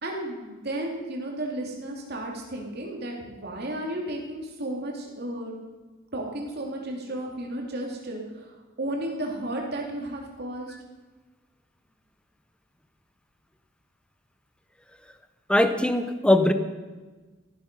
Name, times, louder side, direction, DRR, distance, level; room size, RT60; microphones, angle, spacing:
voice 1, 0.0-5.6 6.1-8.5 8.8-10.7, right 1 dB, 50° right, 0 dB, 2.8 m, -33 dB
voice 2, 15.5-16.5, left 1 dB, 5° left, 9 dB, 0.7 m, -20 dB
14.5 x 12.0 x 5.4 m, 1.3 s
head